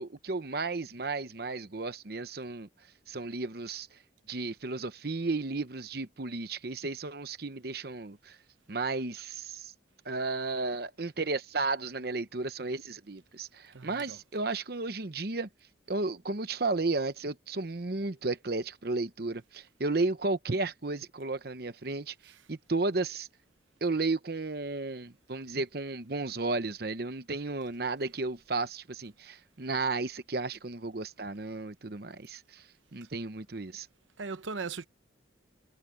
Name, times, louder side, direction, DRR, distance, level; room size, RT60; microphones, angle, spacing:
voice 1, 0.0-2.7 3.1-4.0 4.3-8.4 8.7-9.7 10.0-15.5 15.9-23.3 23.8-33.9, right 3 dB, 55° right, 0.9 m, -33 dB
voice 2, 13.7-14.2 22.3-22.4 33.0-33.1 34.2-34.9, right 4 dB, 90° right, 0.9 m, -39 dB
head